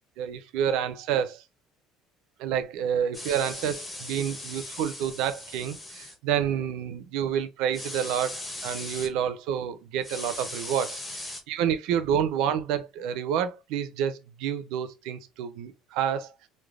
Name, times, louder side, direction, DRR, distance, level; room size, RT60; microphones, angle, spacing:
voice 1, 0.2-1.4 2.4-16.3, right 9 dB, 65° right, 0.4 m, -29 dB
sound 1, 3.1-6.1 7.7-9.1 10.0-11.4, left 2 dB, 10° left, 0.6 m, -38 dB
3.2 x 2.1 x 2.3 m
cardioid pair, 170°, 0 cm